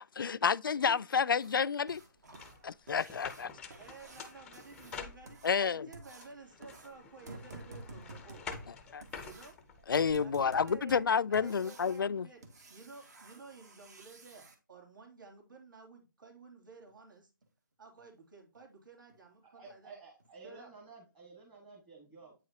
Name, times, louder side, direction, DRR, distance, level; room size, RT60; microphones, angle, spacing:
voice 1, 0.2-2.0 2.6-3.5 5.4-5.9 8.9-9.0 9.9-12.3, left 6 dB, 80° left, 0.4 m, -30 dB
sound 1, 1.3-14.5 16.9-17.0 17.4-17.5 18.0-18.1 18.5-18.6 19.1-19.3 19.6-19.7 20.2-20.3, right 2 dB, 55° right, 1.8 m, -52 dB
sound 2, 2.3-5.7 6.2-10.1, left 6 dB, 5° left, 0.5 m, -48 dB
voice 2, 3.7-8.5 9.2-9.6 10.2-12.4 12.7-17.3 17.8-19.9 20.4-20.7, right 4 dB, 70° right, 3.0 m, -53 dB
voice 3, 19.4-22.3, right 4 dB, 15° right, 1.4 m, -53 dB
8.7 x 4.9 x 2.8 m
hypercardioid pair, 160°, 11 cm